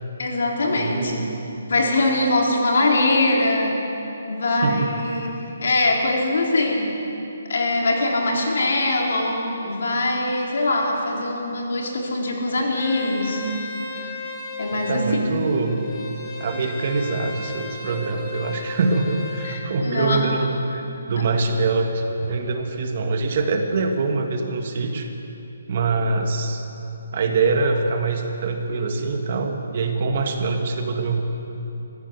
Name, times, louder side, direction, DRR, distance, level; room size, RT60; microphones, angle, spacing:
voice 1, 0.2-1.3 1.7-3.8 4.3-6.9 7.5-13.4 14.6-15.3 19.4-20.3, left 2 dB, 60° left, 0 dB, 3.9 m, -22 dB
voice 2, 0.7-1.3 4.5-4.9 14.7-15.8 16.4-20.8 21.1-25.1 25.7-26.6 27.1-31.2, right 3 dB, 35° right, 4 dB, 1.6 m, -24 dB
Bowed string instrument, 12.7-19.6, left 2 dB, 15° left, 1.9 m, -35 dB
22.0 x 15.0 x 8.2 m, 3.0 s
hypercardioid pair, 175°, 0 cm